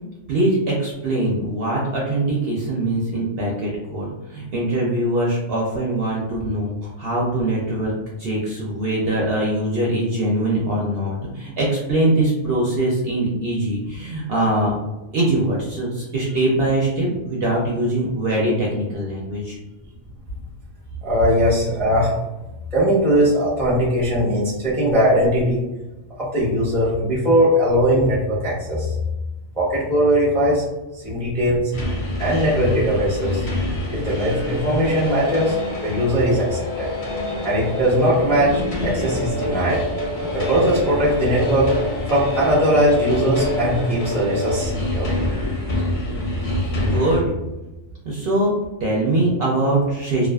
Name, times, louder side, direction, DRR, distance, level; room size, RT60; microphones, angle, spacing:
voice 1, 0.3-7.9 8.2-14.8 15.1-19.6 46.5-47.3 48.0-48.5 48.8-50.3, right 1 dB, 60° right, -4 dB, 0.7 m, -22 dB
voice 2, 21.0-22.1 22.7-25.6 26.2-28.9 29.5-30.6 31.0-31.7 32.2-33.5 33.9-35.6 35.8-36.9 37.4-39.9 40.3-41.7 42.1-45.1, equal, 5° left, -6 dB, 0.5 m, -19 dB
sound 1, 31.7-47.2, left 1 dB, 45° left, 0.7 m, -26 dB
2.4 x 2.3 x 2.2 m, 1.0 s
omnidirectional pair, 1.4 m